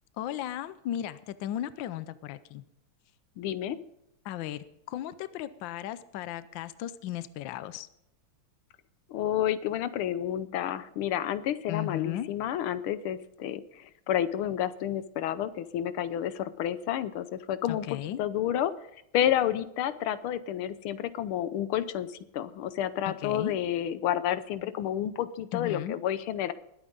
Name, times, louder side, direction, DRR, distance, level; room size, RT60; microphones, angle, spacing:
voice 1, 0.2-2.6 4.2-7.9 11.7-12.3 17.7-18.2 23.1-23.5 25.5-26.0, left 12 dB, 75° left, 14 dB, 1.3 m, -36 dB
voice 2, 3.4-3.8 9.1-17.8 18.2-18.7 19.1-26.5, left 10 dB, 90° left, 13 dB, 1.6 m, -30 dB
21.0 x 8.9 x 3.9 m, 0.81 s
omnidirectional pair, 2.3 m